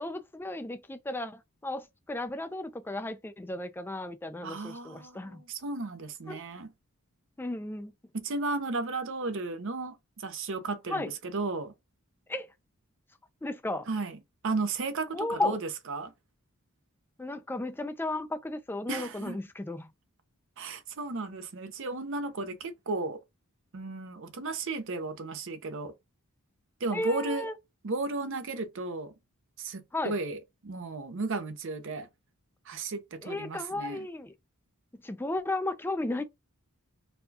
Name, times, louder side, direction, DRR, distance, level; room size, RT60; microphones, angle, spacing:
voice 1, 0.0-5.4 6.3-6.4 7.4-7.9 10.9-11.1 12.3-12.5 13.4-13.9 15.1-15.6 17.2-19.9 26.9-27.5 29.9-30.2 33.2-34.3 34.9-36.2, left 2 dB, 10° left, 0.3 m, -34 dB
voice 2, 4.4-6.7 8.1-11.7 13.9-14.2 14.4-15.6 15.9-16.1 18.9-19.4 20.6-23.2 23.7-25.9 26.8-27.5 27.8-29.1 29.6-32.1 32.7-34.1, right 3 dB, 60° right, 0.6 m, -34 dB
4.1 x 2.3 x 2.7 m
head